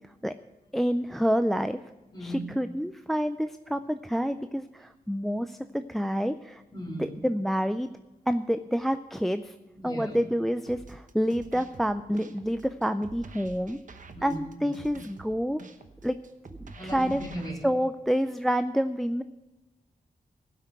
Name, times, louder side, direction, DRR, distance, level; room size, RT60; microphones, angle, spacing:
voice 1, 0.7-1.8 2.2-6.6 7.0-7.9 8.3-9.5 9.8-13.8 14.2-15.6 16.0-16.2 16.6-17.2 17.6-19.2, equal, ahead, 10 dB, 0.4 m, -28 dB
voice 2, 2.1-2.4 6.7-7.2 9.7-10.2 14.1-14.7 16.7-17.6, equal, 25° left, -1 dB, 3.0 m, -37 dB
sound 1, 10.7-17.5, right 3 dB, 55° right, 1.0 m, -47 dB
17.0 x 6.0 x 6.6 m, 1.0 s
wide cardioid pair, 105°, 16 cm